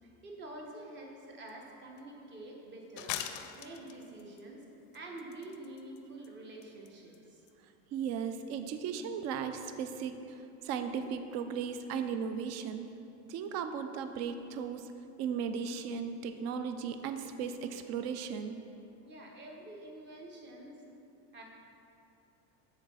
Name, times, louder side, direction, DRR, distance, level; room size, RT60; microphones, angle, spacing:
voice 1, 0.0-4.6 4.9-7.4 19.0-20.8 21.3-21.4, right 1 dB, 30° right, 0 dB, 1.1 m, -47 dB
sound 1, 1.5-1.6 2.0-2.1 3.0-4.4 4.9-6.0 6.2-6.3 6.6-6.9 7.1-7.2 7.5-7.6, left 10 dB, 55° left, 0.5 m, -40 dB
voice 2, 7.9-12.9 13.3-14.9 15.2-18.6, right 7 dB, 50° right, 8 dB, 0.5 m, -36 dB
6.5 x 4.1 x 6.2 m, 2.8 s
cardioid pair, 145°, 35 cm